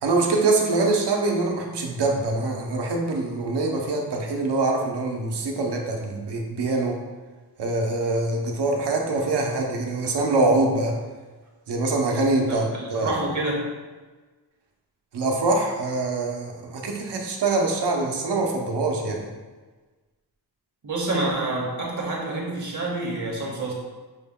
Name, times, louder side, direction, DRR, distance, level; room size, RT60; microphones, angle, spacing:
voice 1, 0.0-7.0 7.6-11.0 11.7-13.1 15.1-19.3, right 2 dB, 80° right, 1 dB, 0.8 m, -24 dB
voice 2, 12.5-13.7 20.8-23.7, right 2 dB, 45° right, -1 dB, 0.7 m, -28 dB
6.1 x 2.2 x 3.5 m, 1.3 s
wide cardioid pair, 165°, 40 cm